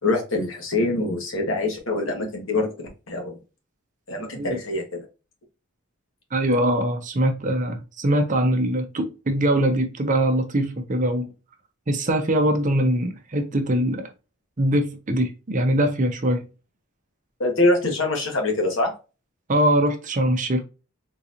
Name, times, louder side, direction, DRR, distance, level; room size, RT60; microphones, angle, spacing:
voice 1, 0.0-3.4 4.1-5.1 17.4-18.9, left 2 dB, 65° left, 1 dB, 1.2 m, -24 dB
voice 2, 6.3-11.3 11.9-14.1 14.6-16.4 19.5-20.6, right 1 dB, 35° right, 6 dB, 0.6 m, -22 dB
3.8 x 2.8 x 2.5 m, 0.31 s
head